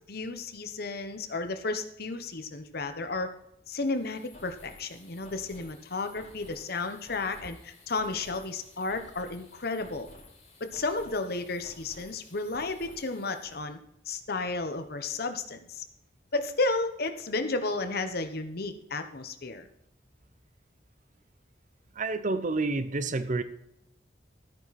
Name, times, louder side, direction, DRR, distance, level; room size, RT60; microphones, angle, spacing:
voice 1, 0.1-3.3 3.7-10.1 10.6-13.8 14.1-15.8 16.3-19.7, left 3 dB, 60° left, 8 dB, 1.1 m, -33 dB
sound 1, 3.8-13.6, left 2 dB, 40° left, 4.0 m, -53 dB
voice 2, 22.0-23.4, right 3 dB, 45° right, 12 dB, 0.7 m, -29 dB
13.0 x 9.0 x 4.2 m, 0.79 s
head